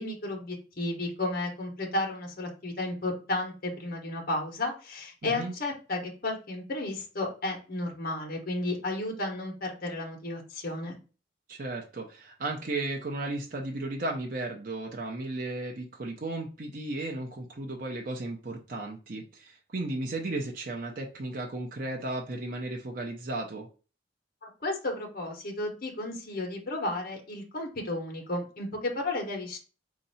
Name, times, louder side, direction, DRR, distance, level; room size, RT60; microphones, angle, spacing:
voice 1, 0.0-11.0 24.4-29.6, left 2 dB, 50° left, 1 dB, 1.2 m, -33 dB
voice 2, 5.2-5.5 11.5-23.7, right 2 dB, 50° right, 1 dB, 0.7 m, -35 dB
4.4 x 2.8 x 4.1 m, 0.35 s
head